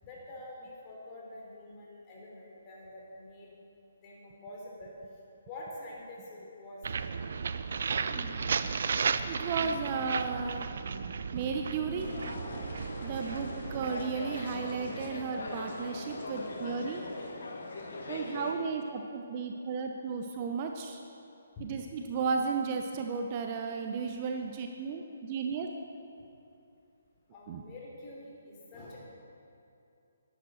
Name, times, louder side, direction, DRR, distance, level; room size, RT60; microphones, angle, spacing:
voice 1, 0.0-3.5 4.0-4.9 5.4-7.0 14.8-15.1 19.6-19.7 21.5-21.7 27.3-29.0, left 1 dB, 25° left, -4 dB, 3.3 m, -47 dB
sound 1, 6.8-16.6, right 5 dB, 65° right, 0.5 m, -35 dB
sound 2, 8.0-8.6 9.4-10.1 10.5-10.9 11.7-12.9, left 1 dB, ahead, 1.6 m, -52 dB
voice 2, 9.2-12.1 13.0-17.0 18.1-21.0 21.6-25.7 27.5-27.6, right 5 dB, 35° right, 4 dB, 0.8 m, -34 dB
sound 3, 12.0-18.5, left 2 dB, 65° left, 2.0 m, -41 dB
11.0 x 9.9 x 6.3 m, 2.7 s
hypercardioid pair, 155°, 0 cm